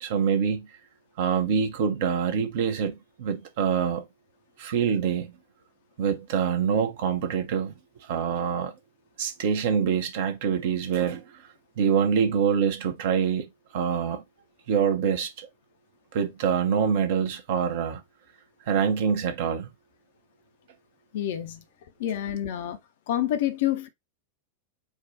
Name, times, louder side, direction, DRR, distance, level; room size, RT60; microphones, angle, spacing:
voice 1, 0.0-0.7 1.2-4.1 4.6-5.4 6.0-7.7 8.1-8.7 9.2-11.4 11.8-14.2 14.7-15.5 16.1-18.0 18.7-19.7, right 7 dB, 50° right, 1.0 m, -25 dB
voice 2, 21.1-21.6 22.0-22.8 23.1-23.9, left 12 dB, 55° left, 0.7 m, -27 dB
4.7 x 2.3 x 4.2 m
figure-of-eight pair, 90°, 0 cm